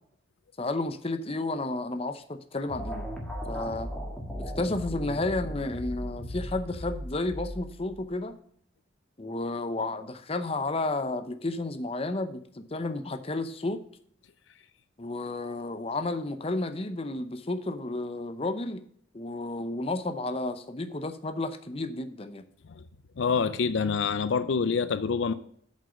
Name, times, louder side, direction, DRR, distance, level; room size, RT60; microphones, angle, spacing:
voice 1, 0.6-3.1 3.5-3.9 4.4-8.4 9.2-13.8 15.0-18.8 19.1-22.4, left 2 dB, 30° left, 0.7 m, -32 dB
sound 1, 2.7-8.2, equal, 5° left, 1.5 m, -37 dB
voice 2, 23.2-25.3, left 5 dB, 70° left, 0.4 m, -26 dB
7.6 x 5.4 x 6.2 m
head